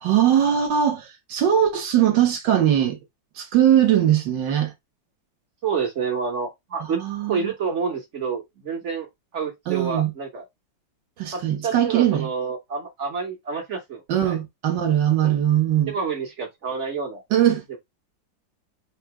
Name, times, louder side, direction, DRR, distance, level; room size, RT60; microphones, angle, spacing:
voice 1, 0.0-3.0 3.4-4.7 6.9-7.5 9.7-10.1 11.2-12.3 14.1-15.9 17.3-17.6, right 10 dB, 70° right, 1.4 m, -20 dB
voice 2, 5.6-7.0 7.3-9.1 9.3-10.4 11.3-14.4 15.2-15.3 15.9-17.2 17.7-17.8, right 5 dB, 50° right, 0.9 m, -28 dB
3.9 x 2.6 x 4.6 m
omnidirectional pair, 2.1 m